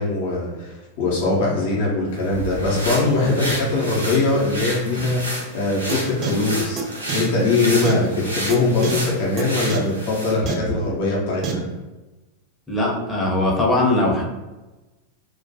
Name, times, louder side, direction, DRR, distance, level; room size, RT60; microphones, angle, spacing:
voice 1, 0.0-6.8 7.1-11.6, left 2 dB, 55° left, -4 dB, 0.6 m, -21 dB
sound 1, 2.2-10.4, right 1 dB, 85° right, 0.7 m, -30 dB
sound 2, 5.9-6.0 6.2-6.3 6.8-6.9 7.1-7.2 7.8-7.9 8.5-8.6 8.8-8.9 9.4-9.5 9.7-9.8 10.5-10.6 11.4-11.5, right 10 dB, 35° right, 0.4 m, -27 dB
voice 2, 12.7-14.2, left 2 dB, 15° left, -2 dB, 0.6 m, -20 dB
2.3 x 2.2 x 2.6 m, 1.1 s
figure-of-eight pair, 90°, 0 cm